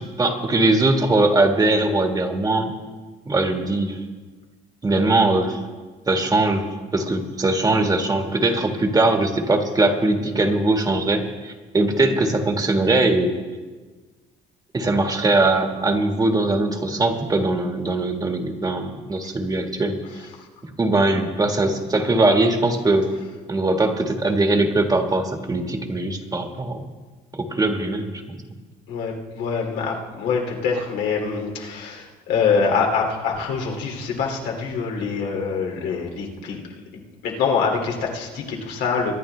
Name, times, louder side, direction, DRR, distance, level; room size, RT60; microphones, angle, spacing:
voice 1, 0.0-2.7 3.2-4.0 4.8-5.6 6.1-6.6 6.9-13.3 14.7-20.0 20.8-23.1 23.5-26.8 27.3-28.4, right 2 dB, 20° right, 4 dB, 1.6 m, -21 dB
voice 2, 28.9-36.7 37.2-39.1, left 5 dB, 90° left, 1 dB, 2.5 m, -24 dB
23.0 x 10.5 x 3.3 m, 1.3 s
cardioid pair, 110°, 17 cm